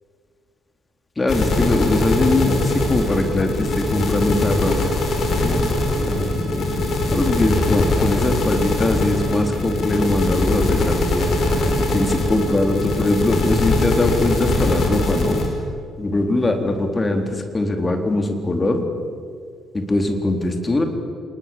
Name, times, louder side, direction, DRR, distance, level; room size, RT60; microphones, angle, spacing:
voice 1, 1.2-4.7 5.4-6.7 7.1-11.3 11.9-15.4 16.0-18.8 19.7-20.8, left 2 dB, 25° left, 5 dB, 3.8 m, -21 dB
sound 1, 1.3-15.5, left 2 dB, 50° left, 5.4 m, -21 dB
27.5 x 20.5 x 7.4 m, 2.2 s
figure-of-eight pair, 45°, 0 cm